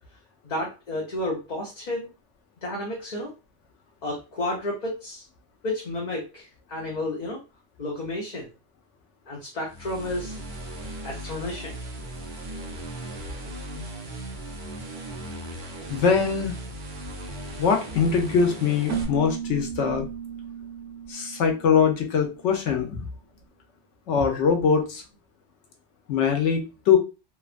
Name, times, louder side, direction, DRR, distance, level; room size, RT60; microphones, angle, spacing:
voice 1, 0.4-2.1 2.6-3.3 4.0-5.2 5.6-7.4 7.8-8.5 9.3-10.4 11.0-11.8, left 1 dB, 45° left, -3 dB, 0.7 m, -31 dB
sound 1, 9.7-19.0, right 1 dB, 50° right, 0.7 m, -37 dB
voice 2, 15.9-16.5 17.6-20.1 21.1-23.0 24.1-25.0 26.1-27.0, left 6 dB, 85° left, 3 dB, 1.0 m, -22 dB
Keyboard (musical), 18.9-22.5, right 8 dB, 85° right, 1.0 m, -35 dB
2.8 x 2.2 x 2.4 m, 0.29 s
omnidirectional pair, 1.2 m